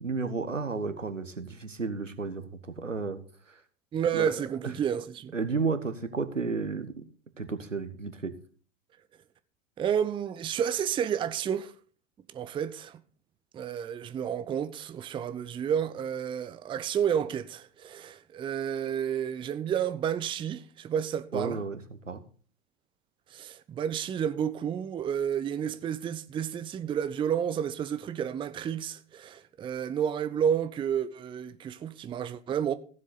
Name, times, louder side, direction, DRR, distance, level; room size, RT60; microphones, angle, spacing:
voice 1, 0.0-3.2 3.5-3.6 4.1-4.3 4.6-4.7 5.3-6.9 7.4-8.3 21.3-22.2, right 4 dB, 85° right, 1.3 m, -32 dB
voice 2, 3.9-5.3 9.8-11.7 12.3-13.0 13.5-21.6 23.3-32.7, right 8 dB, 15° right, 0.6 m, -31 dB
16.0 x 7.5 x 4.0 m
figure-of-eight pair, 90°, 37 cm